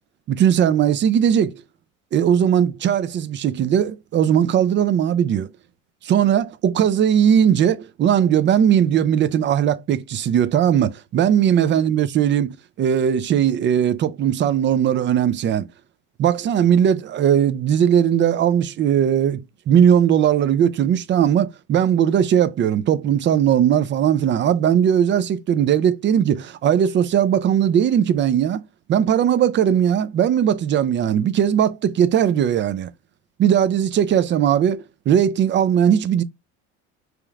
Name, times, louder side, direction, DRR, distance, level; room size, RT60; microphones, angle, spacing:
voice 1, 0.3-1.5 2.1-5.5 6.0-15.7 16.2-28.6 28.9-32.9 33.4-36.2, right 9 dB, 35° right, 0.4 m, -18 dB
5.0 x 3.0 x 2.3 m
cardioid pair, 120°, 34 cm